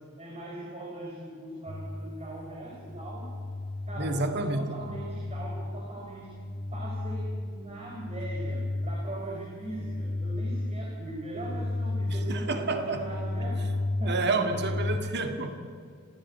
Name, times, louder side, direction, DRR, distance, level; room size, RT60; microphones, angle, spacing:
voice 1, 0.0-3.3 3.9-6.3 6.7-14.4, right 1 dB, 30° right, -1 dB, 4.6 m, -40 dB
sound 1, 1.7-15.0, left 1 dB, 55° left, 4.6 m, -34 dB
voice 2, 4.0-4.8 12.3-13.1 14.0-15.5, right 2 dB, 50° right, 6 dB, 2.0 m, -29 dB
26.5 x 16.5 x 9.4 m, 2.2 s
head